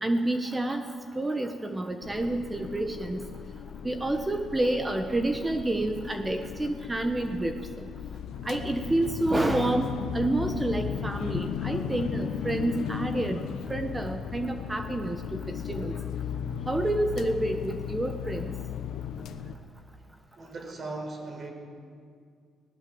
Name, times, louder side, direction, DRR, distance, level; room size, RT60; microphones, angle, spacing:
voice 1, 0.0-0.9 1.1-3.3 3.8-7.9 8.4-15.9 16.7-18.5, right 1 dB, 15° right, 6 dB, 1.3 m, -29 dB
sound 1, 2.0-19.6, left 8 dB, 80° left, 1.1 m, -36 dB
voice 2, 20.4-21.5, right 3 dB, 45° right, 3 dB, 5.1 m, -38 dB
19.0 x 18.0 x 8.0 m, 2.2 s
cardioid pair, 90°, 0 cm